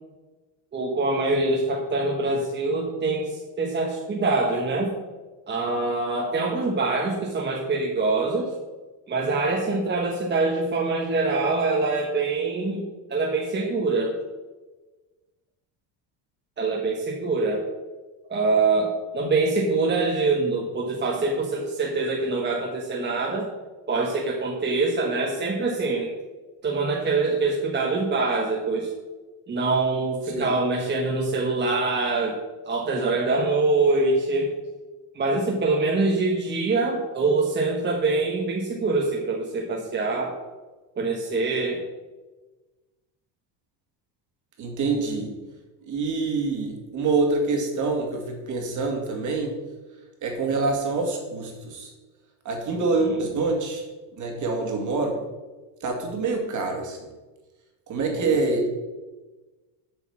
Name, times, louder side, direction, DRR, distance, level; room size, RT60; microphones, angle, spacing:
voice 1, 0.7-4.9 5.5-8.5 9.1-12.8 13.1-14.1 16.6-17.6 18.3-23.5 23.9-26.1 26.6-28.9 29.5-32.4 32.7-34.5 35.1-40.3 40.9-41.8 52.9-53.2 58.1-58.3, right 3 dB, 25° right, -2 dB, 1.4 m, -24 dB
voice 2, 44.6-45.3 45.9-49.5 50.2-51.9 52.4-53.8 54.2-55.2 55.8-57.0 57.9-58.7, right 3 dB, 40° right, 2 dB, 2.3 m, -26 dB
8.3 x 5.5 x 7.3 m, 1.2 s
cardioid pair, 140°, 46 cm